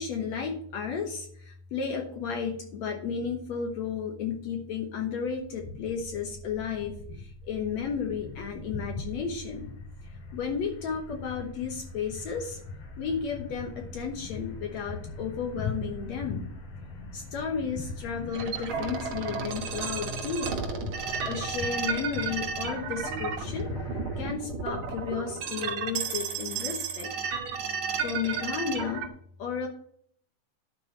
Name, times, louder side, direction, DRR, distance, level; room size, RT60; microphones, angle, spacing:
voice 1, 0.0-9.7 10.3-12.6 13.0-16.5 17.1-20.6 21.2-23.7 24.2-27.1 28.0-29.1 29.4-29.7, left 6 dB, 65° left, 2 dB, 2.3 m, -33 dB
sound 1, 5.3-24.3, left 3 dB, 90° left, 6.4 m, -41 dB
sound 2, 18.3-29.1, right 6 dB, 65° right, 2.4 m, -33 dB
11.5 x 4.9 x 6.2 m, 0.63 s
omnidirectional pair, 3.6 m